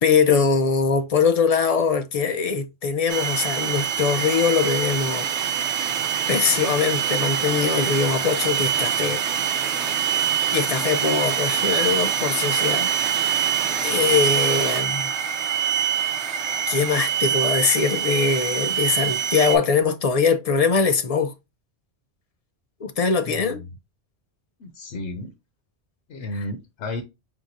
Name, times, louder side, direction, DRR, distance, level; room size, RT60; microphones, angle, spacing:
voice 1, 0.0-5.3 6.3-9.2 9.7-9.9 10.5-13.4 13.8-15.1 16.7-21.3 22.8-23.6, left 5 dB, 45° left, 0.5 m, -22 dB
sound 1, 3.1-19.6, right 8 dB, 80° right, 1.0 m, -24 dB
voice 2, 23.2-23.7 24.6-25.3 26.1-27.0, left 2 dB, 90° left, 1.1 m, -33 dB
4.6 x 3.6 x 2.6 m
omnidirectional pair, 1.1 m